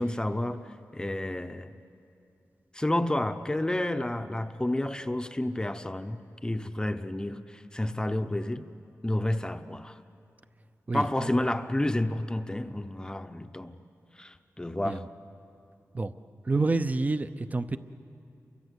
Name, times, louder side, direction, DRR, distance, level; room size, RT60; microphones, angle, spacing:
voice 1, 0.0-1.8 2.7-8.7 9.0-10.0 10.9-13.8 14.2-15.1, left 1 dB, 15° left, 0.7 m, -30 dB
voice 2, 10.9-11.3 14.8-15.1 15.9-16.1 16.4-17.8, right 3 dB, 30° right, 0.7 m, -28 dB
29.5 x 24.0 x 8.2 m
wide cardioid pair, 125°, 6 cm